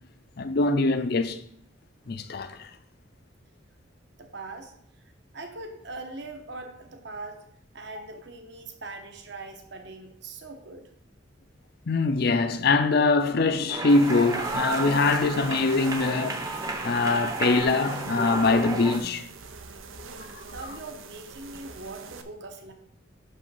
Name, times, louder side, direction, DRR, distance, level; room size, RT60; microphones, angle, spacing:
voice 1, 0.4-1.4 2.1-2.7 8.0-8.1 11.9-16.4 16.8-19.2 20.3-20.4, left 3 dB, 55° left, 0.5 m, -23 dB
voice 2, 4.2-7.5 7.7-10.9 20.5-22.7, right 3 dB, 60° right, 1.0 m, -41 dB
sound 1, 13.7-19.0, right 2 dB, 20° right, 0.7 m, -32 dB
sound 2, 13.9-22.2, right 4 dB, 90° right, 0.7 m, -43 dB
6.2 x 5.3 x 5.5 m
head